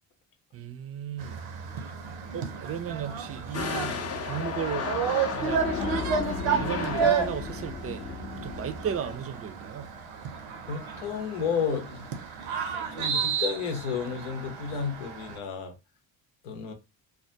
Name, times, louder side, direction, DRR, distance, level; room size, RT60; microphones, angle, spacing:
voice 1, 0.5-1.4 2.3-4.9 5.3-5.6 6.4-8.0 8.4-9.9, right 8 dB, 30° right, 0.4 m, -35 dB
sound 1, 1.2-15.4, right 6 dB, 75° right, 0.7 m, -32 dB
sound 2, 3.5-9.2, left 6 dB, 35° left, 0.5 m, -33 dB
voice 2, 10.7-12.1 13.0-15.7 16.4-16.7, left 6 dB, 85° left, 0.8 m, -31 dB
2.2 x 2.2 x 2.7 m
supercardioid pair, 55°, 47 cm